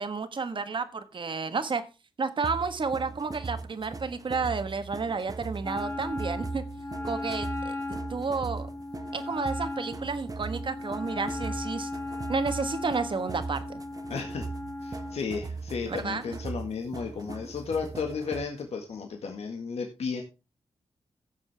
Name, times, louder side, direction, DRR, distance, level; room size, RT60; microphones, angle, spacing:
voice 1, 0.0-1.8 2.2-6.6 7.0-8.7 9.1-11.9 12.3-13.8 15.9-16.2, right 4 dB, 50° right, 10 dB, 1.4 m, -31 dB
sound 1, 2.4-18.6, right 4 dB, 35° right, 0.9 m, -39 dB
Wind instrument woodwind instrument, 5.6-15.2, left 2 dB, 20° left, 2.2 m, -37 dB
voice 2, 14.1-14.5 14.8-20.2, left 5 dB, 85° left, 3 dB, 1.8 m, -33 dB
15.5 x 7.0 x 3.5 m, 0.29 s
cardioid pair, 80°, 10 cm